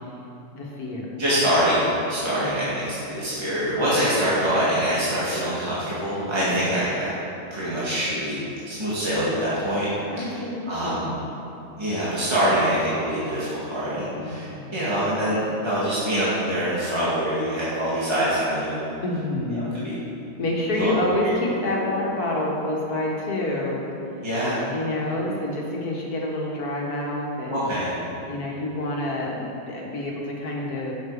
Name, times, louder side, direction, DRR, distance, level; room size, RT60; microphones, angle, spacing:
voice 1, 0.5-1.1 2.4-2.7 6.4-6.7 10.1-11.3 14.1-14.8 19.0-20.0 20.4-23.9 24.7-27.6 28.3-30.9, left 1 dB, 80° left, -2 dB, 2.2 m, -28 dB
voice 2, 1.2-7.1 7.5-8.4 8.7-9.9 10.2-11.1 11.8-18.8 19.5-19.9 20.7-21.0 21.2-21.3 24.2-24.6 27.5-27.9, equal, 20° right, -10 dB, 2.1 m, -24 dB
12.0 x 8.2 x 5.0 m, 2.9 s
omnidirectional pair, 1.6 m